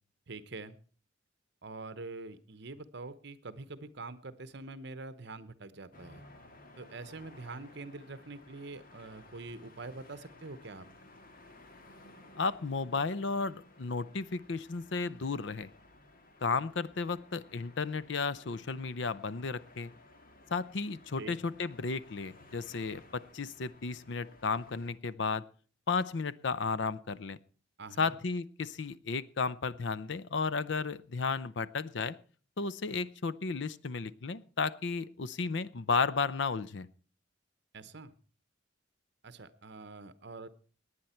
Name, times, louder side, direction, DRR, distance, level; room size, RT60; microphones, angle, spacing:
voice 1, 0.3-0.8 1.6-6.3 6.8-10.9 21.1-21.4 27.8-28.2 37.7-38.1 39.2-40.5, right 3 dB, 60° right, 14 dB, 1.0 m, -45 dB
sound 1, 5.9-24.9, left 2 dB, 45° left, 1.9 m, -57 dB
voice 2, 12.4-15.7 16.4-19.9 20.5-25.4 25.9-27.4 28.0-32.2 32.6-36.9, left 4 dB, 65° left, 18 dB, 0.6 m, -33 dB
18.5 x 9.9 x 4.4 m, 0.41 s
head